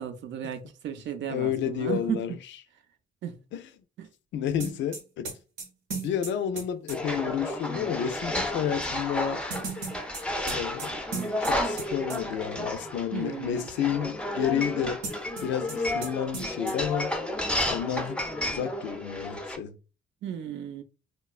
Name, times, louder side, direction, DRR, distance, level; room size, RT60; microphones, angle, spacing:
voice 1, 0.0-2.3 3.2-3.4 4.0-4.1 13.1-13.7 20.2-20.8, right 9 dB, 70° right, 0.5 m, -34 dB
voice 2, 1.3-2.3 3.5-3.6 4.3-5.3 5.9-9.4 10.5-11.0 11.5-15.0 15.4-17.1 17.7-18.2 18.4-19.8, left 9 dB, 70° left, 0.4 m, -30 dB
sound 1, 4.6-7.0 9.5-11.8 12.1-12.2 15.0-15.8 16.0-16.1 16.3-16.7, right 4 dB, 90° right, 0.9 m, -36 dB
sound 2, 6.9-19.6, left 1 dB, 5° left, 0.4 m, -32 dB
3.0 x 2.1 x 2.3 m
cardioid pair, 90°, 20 cm